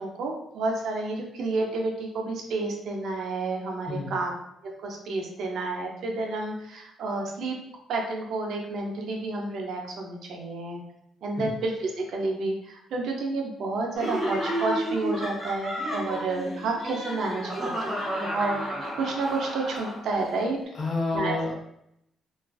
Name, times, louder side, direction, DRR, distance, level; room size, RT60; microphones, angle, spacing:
voice 1, 0.0-4.3 4.6-7.6 7.9-10.8 11.2-18.6 19.0-20.6 21.1-21.4, right 3 dB, 70° right, 1 dB, 0.5 m, -30 dB
voice 2, 3.9-4.2 11.4-11.5 20.7-21.5, left 3 dB, 50° left, -2 dB, 0.7 m, -29 dB
Laughter, 14.0-20.3, right 1 dB, 15° left, 1.0 m, -31 dB
2.3 x 2.3 x 2.3 m, 0.78 s
cardioid pair, 90°, 0 cm